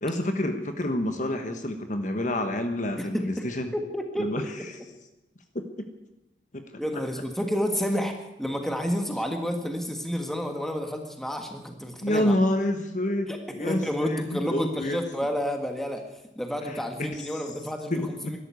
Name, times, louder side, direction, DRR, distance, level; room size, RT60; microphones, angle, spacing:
voice 1, 0.0-3.7 4.2-4.7 5.8-5.9 12.0-15.0 16.7-17.4 17.9-18.4, left 1 dB, 40° left, 7 dB, 1.2 m, -28 dB
voice 2, 3.0-4.5 6.8-12.3 13.3-16.1 16.3-17.9 18.3-18.4, equal, ahead, 4 dB, 1.6 m, -30 dB
13.0 x 12.0 x 9.3 m, 0.95 s
head